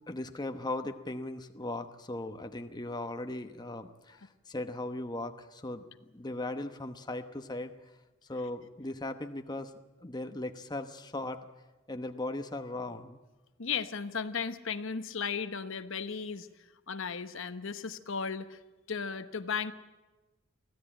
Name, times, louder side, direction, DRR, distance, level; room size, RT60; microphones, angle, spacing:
voice 1, 0.0-5.8 6.1-7.7 8.3-9.7 10.0-11.5 11.9-13.2, left 2 dB, 20° left, 7 dB, 1.0 m, -38 dB
voice 2, 13.6-16.5 16.9-18.6 18.9-19.7, left 6 dB, 65° left, 10 dB, 1.0 m, -35 dB
24.0 x 15.5 x 9.0 m, 1.1 s
head